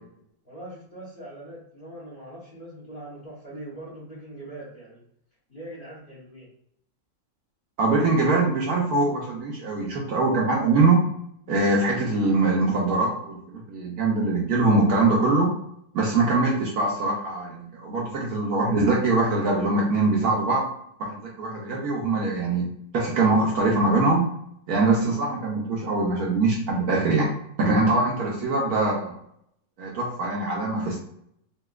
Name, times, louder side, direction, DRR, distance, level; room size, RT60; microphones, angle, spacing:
voice 1, 0.4-5.0 5.5-6.5, right 1 dB, 40° left, -7 dB, 0.7 m, -41 dB
voice 2, 7.8-11.0 11.5-15.5 15.9-20.7 21.0-22.7 22.9-24.2 24.7-27.3 27.6-29.2 29.8-31.0, right 3 dB, 70° right, -2 dB, 0.9 m, -23 dB
4.0 x 2.4 x 2.3 m, 0.70 s
omnidirectional pair, 2.0 m